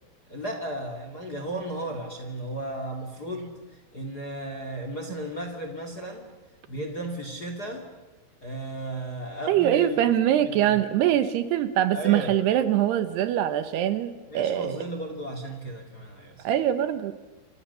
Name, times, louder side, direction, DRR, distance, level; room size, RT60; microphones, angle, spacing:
voice 1, 0.3-6.3 6.7-7.9 8.4-10.8 11.9-12.3 14.3-16.5, right 1 dB, 30° left, 5 dB, 2.0 m, -35 dB
voice 2, 9.5-14.8 16.4-17.1, right 11 dB, 75° right, 12 dB, 2.8 m, -23 dB
28.5 x 26.5 x 6.9 m, 1.1 s
omnidirectional pair, 5.2 m